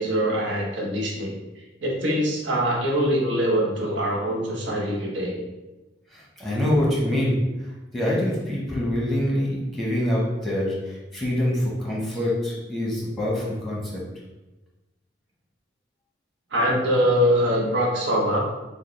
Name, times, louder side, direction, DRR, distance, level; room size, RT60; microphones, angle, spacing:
voice 1, 0.0-1.4 1.8-5.4 13.4-13.5 16.5-18.4, equal, 75° right, -2 dB, 1.0 m, -23 dB
voice 2, 6.1-7.3 7.9-14.0, left 1 dB, ahead, -5 dB, 1.1 m, -25 dB
6.3 x 2.1 x 3.2 m, 1.1 s
head